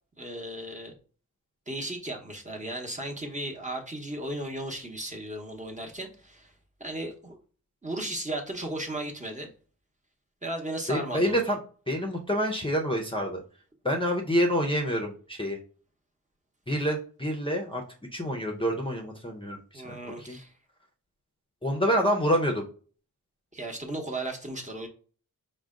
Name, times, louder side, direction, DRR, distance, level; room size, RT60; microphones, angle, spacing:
voice 1, 0.2-0.9 1.7-6.5 6.8-7.4 7.8-9.5 10.4-11.4 19.7-20.5 23.5-24.9, right 1 dB, 20° right, 1 dB, 0.9 m, -35 dB
voice 2, 10.9-11.6 11.9-13.4 13.8-15.6 16.7-17.8 18.1-20.0 20.3-20.4 21.6-22.7, equal, 15° left, 1 dB, 0.6 m, -27 dB
4.9 x 2.2 x 3.6 m, 0.40 s
wide cardioid pair, 95°, 34 cm